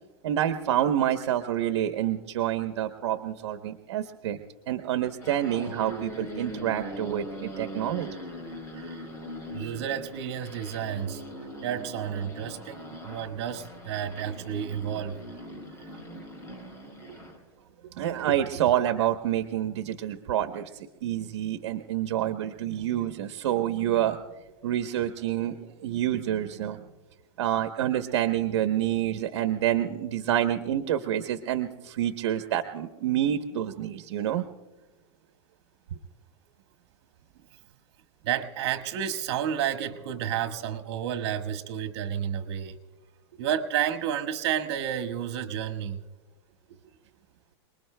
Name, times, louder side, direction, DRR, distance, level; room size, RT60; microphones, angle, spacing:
voice 1, 0.2-4.4 4.7-8.1 18.0-20.7 21.0-24.2 24.6-26.8 27.4-34.4, right 11 dB, 80° right, 7 dB, 0.9 m, -28 dB
sound 1, 5.2-17.4, equal, 20° left, 2.9 m, -41 dB
voice 2, 9.5-11.2 11.6-15.2 15.8-15.9 38.2-42.8 43.4-46.0, right 9 dB, 65° right, 7 dB, 1.5 m, -31 dB
28.5 x 20.5 x 2.2 m, 1.2 s
supercardioid pair, 155°, 14 cm